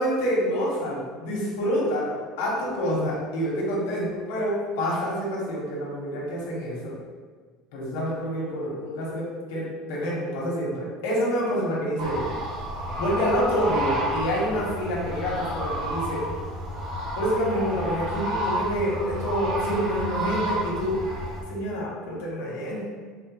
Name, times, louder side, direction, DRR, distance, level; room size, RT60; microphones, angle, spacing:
voice 1, 0.0-6.9 7.7-12.3 13.0-16.2 17.1-21.0 21.5-22.9, equal, 85° left, -4 dB, 0.9 m, -27 dB
sound 1, 12.0-21.4, right 1 dB, 40° right, 0.6 m, -30 dB
4.2 x 2.1 x 2.9 m, 1.5 s
cardioid pair, 175°, 0 cm